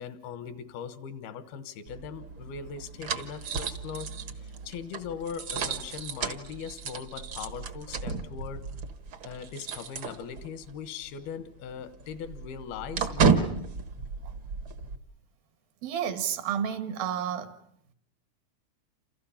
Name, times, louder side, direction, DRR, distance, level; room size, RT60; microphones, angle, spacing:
voice 1, 0.0-8.7 9.2-13.5, left 7 dB, 80° left, 3.2 m, -40 dB
sound 1, 1.9-10.7 11.0-11.1 11.5-15.0, right 5 dB, 55° right, 1.4 m, -32 dB
voice 2, 15.8-17.6, right 9 dB, 75° right, 3.2 m, -31 dB
29.0 x 29.0 x 5.7 m
omnidirectional pair, 4.4 m